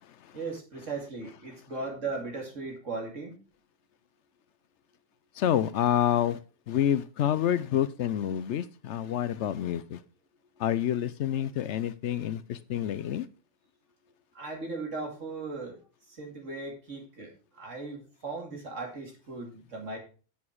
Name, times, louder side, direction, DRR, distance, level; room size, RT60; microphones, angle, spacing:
voice 1, 0.3-3.3 14.3-15.8 16.2-20.0, right 3 dB, 90° right, 2.9 m, -37 dB
voice 2, 5.4-6.4 6.7-10.0 10.6-13.3, left 10 dB, 70° left, 0.9 m, -28 dB
8.5 x 7.1 x 4.7 m
omnidirectional pair, 1.3 m